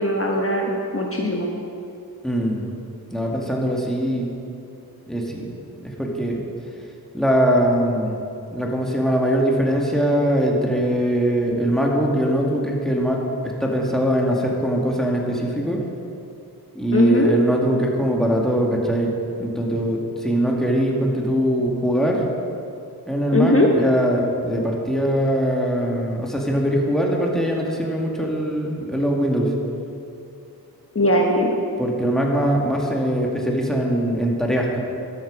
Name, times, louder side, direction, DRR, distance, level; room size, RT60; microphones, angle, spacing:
voice 1, 0.0-1.5 16.9-17.3 23.3-23.7 30.9-31.6, left 1 dB, 35° left, 0 dB, 1.2 m, -19 dB
voice 2, 2.2-2.6 3.1-4.3 5.1-5.5 5.8-6.4 7.1-8.2 8.5-15.8 16.7-19.1 19.4-22.2 23.1-29.5 31.8-34.8, equal, ahead, -1 dB, 2.2 m, -22 dB
12.5 x 8.8 x 5.4 m, 2.6 s
cardioid pair, 40°, 39 cm